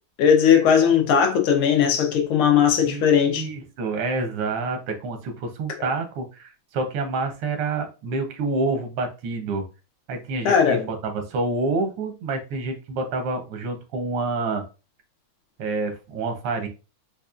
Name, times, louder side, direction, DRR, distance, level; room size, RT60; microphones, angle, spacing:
voice 1, 0.2-3.4 5.8-5.9 10.4-10.8, left 7 dB, 90° left, 1.7 m, -18 dB
voice 2, 3.3-9.6 10.1-14.6 15.6-16.7, right 3 dB, 90° right, 1.8 m, -28 dB
5.2 x 2.4 x 2.4 m
omnidirectional pair, 2.3 m